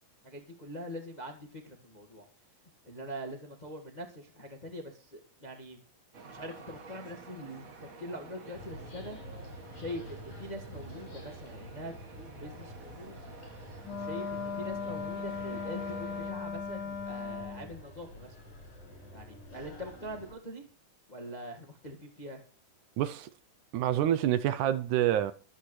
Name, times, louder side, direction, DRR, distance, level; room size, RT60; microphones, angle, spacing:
voice 1, 0.2-2.2 2.8-5.8 6.3-7.7 8.0-9.2 9.8-13.2 13.8-18.4 19.1-20.7 21.1-22.4, equal, 25° left, 1.0 m, -43 dB
sound 1, 6.1-16.3, right 4 dB, 50° right, 1.0 m, -50 dB
sound 2, 8.5-20.3, left 1 dB, 65° left, 7.0 m, -48 dB
Wind instrument woodwind instrument, 13.8-17.7, left 6 dB, 45° left, 2.8 m, -37 dB
voice 2, 23.0-23.3 23.7-25.3, right 11 dB, 75° right, 2.0 m, -27 dB
22.0 x 8.6 x 3.2 m
omnidirectional pair, 3.8 m